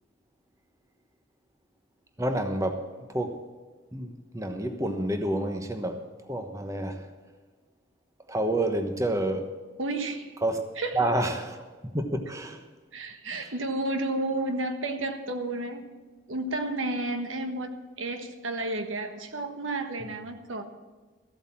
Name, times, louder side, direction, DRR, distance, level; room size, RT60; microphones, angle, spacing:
voice 1, 2.2-2.8 3.1-3.3 3.9-6.0 6.3-7.0 8.3-9.5 10.4-10.6 10.9-11.6 11.9-12.6, right 1 dB, 15° right, 1.0 m, -28 dB
voice 2, 9.8-10.4 10.8-11.0 12.9-15.8 16.3-17.7 18.0-20.6, right 2 dB, 90° right, 1.4 m, -31 dB
14.0 x 8.1 x 7.2 m
head